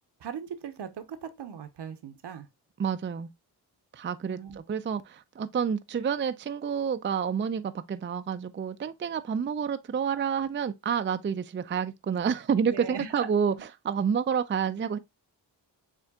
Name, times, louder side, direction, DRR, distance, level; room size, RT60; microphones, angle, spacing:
voice 1, 0.2-2.5 4.3-4.6 12.7-13.3, right 7 dB, 65° right, 0.9 m, -39 dB
voice 2, 2.8-3.3 3.9-13.5 13.8-15.0, right 7 dB, 25° right, 0.4 m, -29 dB
7.1 x 2.5 x 2.3 m
cardioid pair, 45°, 44 cm